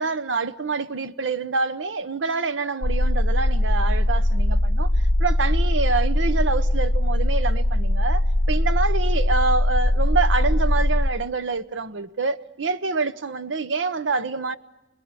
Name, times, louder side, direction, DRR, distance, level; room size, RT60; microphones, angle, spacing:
voice 1, 0.0-4.9 5.2-14.6, right 4 dB, 85° right, 0.9 m, -26 dB
sound 1, 2.8-11.1, left 1 dB, 50° left, 0.9 m, -21 dB
30.0 x 20.5 x 9.6 m
head